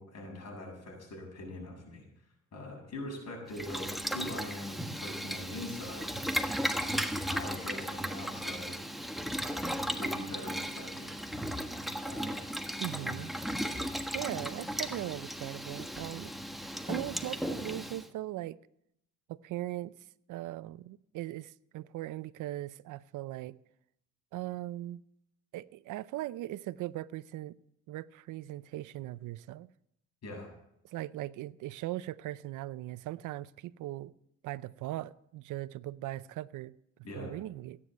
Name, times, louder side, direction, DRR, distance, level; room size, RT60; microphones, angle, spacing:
voice 1, 0.0-2.1 2.5-6.1 6.7-8.8 9.3-11.1 11.7-12.4 30.2-30.5 37.0-37.3, left 1 dB, 60° left, 7.5 m, -43 dB
Boiling, 3.5-18.1, equal, ahead, 1.4 m, -36 dB
voice 2, 12.8-13.3 14.1-16.3 16.9-18.6 19.3-19.9 20.3-23.6 24.3-25.0 25.5-27.6 27.9-29.7 30.9-34.1 34.4-36.8 37.2-37.8, right 15 dB, 85° right, 0.6 m, -39 dB
16.5 x 9.8 x 7.5 m
cardioid pair, 90°, 30 cm